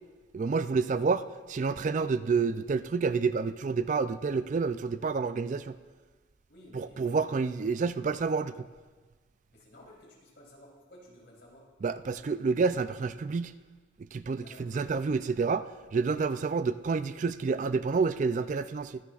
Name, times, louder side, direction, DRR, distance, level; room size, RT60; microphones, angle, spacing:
voice 1, 0.3-5.8 6.7-8.7 11.8-13.5 14.1-15.7 15.9-19.0, right 4 dB, 40° right, 0.3 m, -29 dB
voice 2, 6.5-7.6 9.5-11.7 14.4-14.7, left 1 dB, 65° left, 3.4 m, -55 dB
23.5 x 9.8 x 2.4 m
head